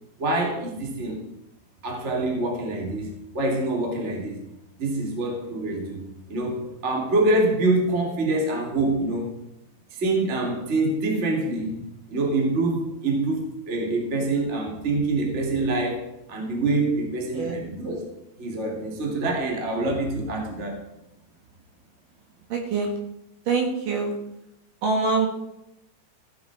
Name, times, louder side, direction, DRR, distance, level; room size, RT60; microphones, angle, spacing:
voice 1, 0.2-1.2 1.8-3.1 3.3-4.4 4.8-6.0 6.3-9.3 9.9-11.7 12.1-18.0 18.4-20.8, right 2 dB, 20° right, 1 dB, 2.0 m, -25 dB
voice 2, 22.5-22.9 23.5-24.1 24.8-25.3, right 4 dB, 60° right, 1 dB, 3.1 m, -24 dB
16.0 x 8.7 x 4.7 m, 0.84 s
omnidirectional pair, 4.7 m